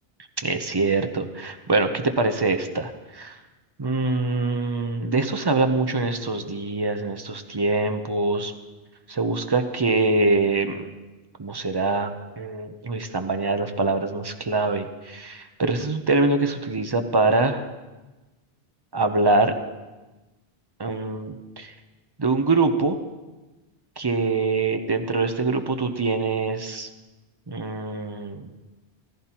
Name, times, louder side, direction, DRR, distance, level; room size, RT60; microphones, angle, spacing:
voice 1, 0.4-3.3 3.8-8.5 9.1-10.9 11.4-17.6 18.9-19.5 20.8-21.7 22.2-23.0 24.0-26.9 27.5-28.4, right 3 dB, 30° right, 7 dB, 0.6 m, -24 dB
15.0 x 14.0 x 2.9 m, 1.1 s
omnidirectional pair, 1.0 m